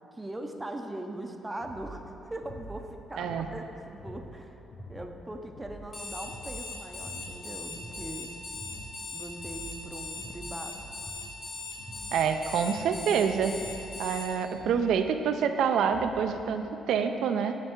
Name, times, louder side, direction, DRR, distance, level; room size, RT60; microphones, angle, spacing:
voice 1, 0.1-4.6 4.9-8.3 9.1-10.8, right 1 dB, 15° right, 4 dB, 0.5 m, -40 dB
sound 1, 1.6-16.4, equal, 60° left, 1.3 m, -47 dB
voice 2, 3.2-3.5 12.1-13.5 14.0-17.6, right 7 dB, 80° right, 7 dB, 0.4 m, -27 dB
Alarm, 5.8-14.3, left 3 dB, 40° left, 1.5 m, -39 dB
8.7 x 3.4 x 4.4 m, 2.9 s
cardioid pair, 90°, 0 cm